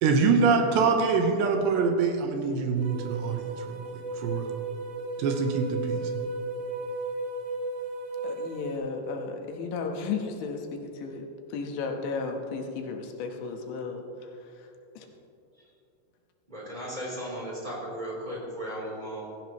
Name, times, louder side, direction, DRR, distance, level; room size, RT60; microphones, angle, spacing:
voice 1, 0.0-3.5 4.2-4.5 5.2-6.0, right 5 dB, 80° right, 4 dB, 3.1 m, -24 dB
sound 1, 2.8-8.8, right 2 dB, 60° right, 2.6 m, -35 dB
voice 2, 8.2-14.7 15.0-15.1, left 4 dB, 80° left, 3 dB, 3.4 m, -34 dB
voice 3, 16.5-19.4, equal, 10° right, -5 dB, 2.8 m, -36 dB
16.5 x 16.0 x 3.1 m, 2.7 s
omnidirectional pair, 5.1 m